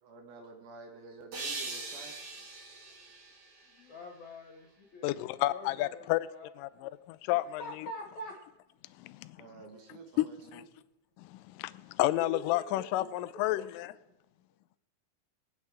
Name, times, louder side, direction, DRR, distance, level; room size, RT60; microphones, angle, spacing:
voice 1, 0.0-2.2 9.4-10.7, right 4 dB, 75° right, 3 dB, 3.1 m, -50 dB
sound 1, 1.3-4.5, right 3 dB, 50° right, 3.9 m, -42 dB
voice 2, 3.7-6.5 7.3-8.3 12.1-13.7, left 1 dB, 55° left, 1 dB, 2.5 m, -45 dB
voice 3, 5.0-6.3 6.6-7.6 9.0-9.4 10.2-10.3 10.5-10.6 11.2-13.9, left 16 dB, 85° left, 14 dB, 1.9 m, -31 dB
24.5 x 8.6 x 3.5 m, 1.0 s
omnidirectional pair, 4.5 m